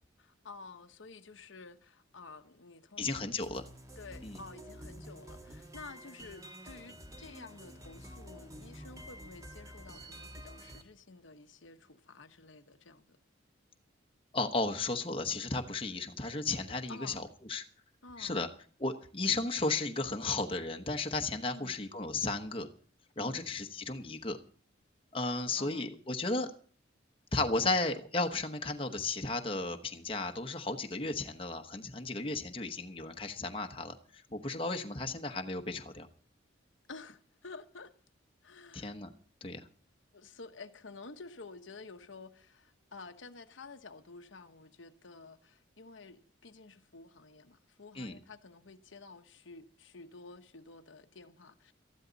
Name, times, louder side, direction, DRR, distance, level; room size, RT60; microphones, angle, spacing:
voice 1, 0.2-3.3 4.0-13.2 16.9-17.3 18.0-18.4 21.5-21.8 23.2-23.5 25.2-25.9 36.9-37.9 38.4-38.9 40.1-51.7, left 3 dB, 75° left, 1.1 m, -51 dB
voice 2, 3.0-3.7 4.2-4.4 14.3-17.6 18.2-18.5 18.8-22.7 23.2-24.4 25.1-26.5 27.3-36.1 38.7-39.1 39.4-39.6 48.0-48.2, left 3 dB, 30° left, 1.1 m, -34 dB
sound 1, 3.4-10.8, equal, 15° right, 1.6 m, -49 dB
18.5 x 13.5 x 4.0 m
head